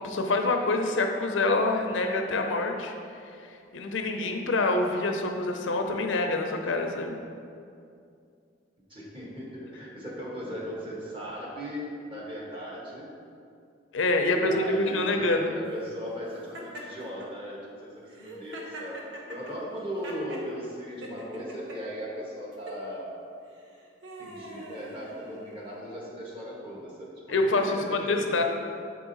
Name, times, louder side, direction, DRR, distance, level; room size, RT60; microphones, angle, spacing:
voice 1, 0.0-2.9 3.7-7.2 13.9-15.5 27.3-28.4, left 2 dB, 90° left, 4 dB, 0.7 m, -26 dB
voice 2, 8.9-13.1 14.2-19.0 19.3-23.1 24.2-27.1 27.5-28.4, equal, 30° right, -4 dB, 1.4 m, -38 dB
Laughter, 16.5-17.3 18.1-20.5 21.0-21.8 22.5-22.8 23.5-25.8, right 1 dB, 75° right, 1.0 m, -43 dB
7.5 x 4.7 x 4.1 m, 2.4 s
head